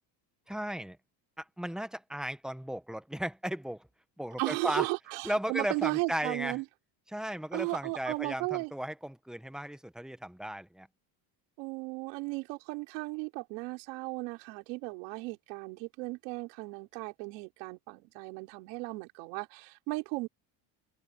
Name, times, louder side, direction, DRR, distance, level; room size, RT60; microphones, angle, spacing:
voice 1, 0.5-1.0 1.4-3.9 4.2-4.9 5.2-6.6 7.1-10.9, equal, ahead, 1.1 m, -36 dB
voice 2, 4.4-6.6 7.5-8.7 11.6-20.3, right 27 dB, 85° right, 5.0 m, -35 dB
open air
cardioid pair, 120°, 50 cm